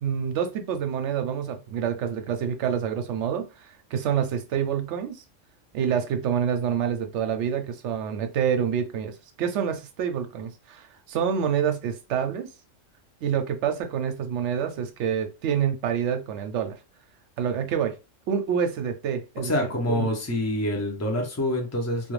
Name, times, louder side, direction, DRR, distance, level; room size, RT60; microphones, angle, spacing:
voice 1, 0.0-3.5 3.9-5.2 5.7-12.5 13.2-16.8 17.4-18.0 18.3-19.5 19.9-20.1, right 8 dB, 70° right, 0.8 m, -27 dB
voice 2, 19.4-22.1, left 1 dB, 20° left, 0.4 m, -26 dB
2.4 x 2.3 x 3.1 m
omnidirectional pair, 1.3 m